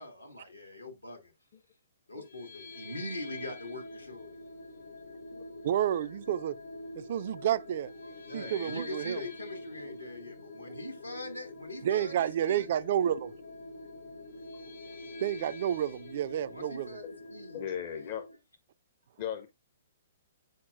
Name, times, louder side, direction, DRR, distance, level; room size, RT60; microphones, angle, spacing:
voice 1, 0.0-1.3 2.1-4.3 8.0-12.8 16.3-17.6, left 1 dB, 90° left, 2.0 m, -42 dB
sound 1, 2.2-18.4, left 2 dB, 65° left, 3.4 m, -46 dB
voice 2, 5.6-6.6 7.0-7.9 8.3-9.2 11.8-13.3 15.2-17.0, right 10 dB, 50° right, 0.3 m, -30 dB
voice 3, 17.5-18.3 19.2-19.5, left 9 dB, 40° left, 0.6 m, -37 dB
7.8 x 5.6 x 2.5 m
figure-of-eight pair, 120°, 0 cm